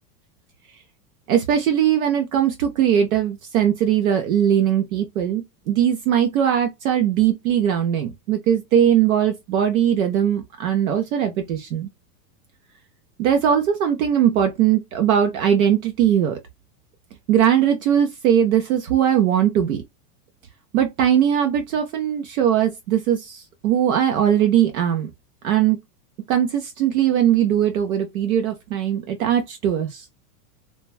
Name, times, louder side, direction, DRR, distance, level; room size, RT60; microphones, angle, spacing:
voice 1, 1.3-11.9 13.2-16.4 17.3-19.8 20.7-25.1 25.4-25.8 26.3-30.0, right 9 dB, 60° right, 0.7 m, -20 dB
3.3 x 2.2 x 2.4 m
supercardioid pair, 180°, 47 cm